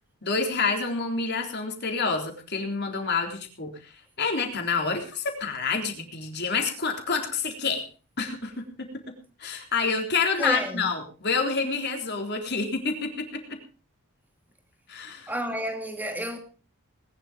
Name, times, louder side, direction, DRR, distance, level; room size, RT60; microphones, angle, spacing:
voice 1, 0.2-3.9 4.2-7.8 8.2-8.9 9.4-13.6 14.9-15.3, left 4 dB, 50° left, 3.8 m, -28 dB
voice 2, 10.4-10.8 15.3-16.4, equal, 10° right, 2.5 m, -30 dB
20.0 x 11.5 x 5.1 m
head